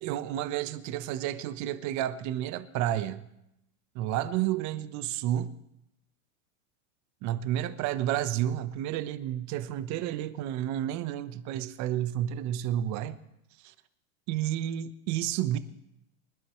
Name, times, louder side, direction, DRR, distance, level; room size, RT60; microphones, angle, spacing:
voice 1, 0.0-3.2 3.9-5.5 7.2-13.2 13.6-13.7 14.3-15.6, right 12 dB, 45° right, 1.1 m, -31 dB
25.5 x 11.5 x 3.2 m
hypercardioid pair, 110°, 41 cm